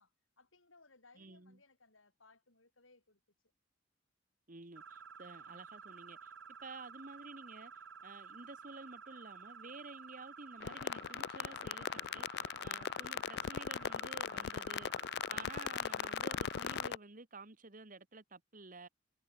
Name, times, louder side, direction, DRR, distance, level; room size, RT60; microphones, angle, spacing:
voice 1, 0.0-3.2, left 3 dB, 80° left, 7.2 m, -65 dB
voice 2, 1.2-1.6 4.5-6.3 6.6-18.9, right 3 dB, 45° right, 1.8 m, -52 dB
sound 1, 4.8-16.9, right 6 dB, 65° right, 1.3 m, -52 dB
sound 2, 10.6-17.0, left 9 dB, 55° left, 0.3 m, -39 dB
head